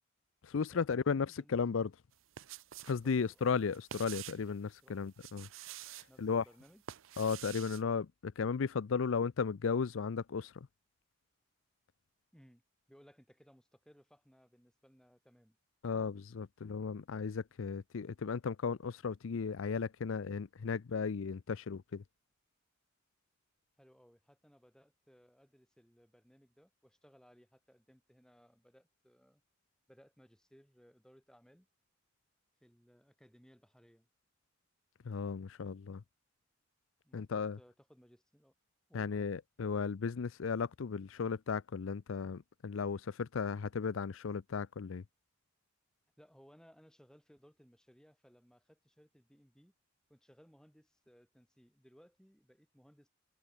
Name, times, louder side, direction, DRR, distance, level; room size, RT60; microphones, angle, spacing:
voice 1, 0.4-1.9 2.9-5.5 6.2-6.4 7.2-10.7 15.8-22.0 35.0-36.0 37.1-37.6 38.9-45.0, left 5 dB, 80° left, 0.5 m, -35 dB
voice 2, 1.3-1.9 3.0-3.6 4.8-5.1 6.1-6.8 12.3-12.6 12.9-15.6 23.8-29.4 29.9-31.7 32.6-34.1 37.0-38.5 38.9-39.3 46.2-49.7 50.1-53.1, equal, 5° left, 6.3 m, -63 dB
sound 1, 2.1-3.0 3.3-4.5 5.1-6.1 6.6-7.8, right 11 dB, 80° right, 0.6 m, -48 dB
head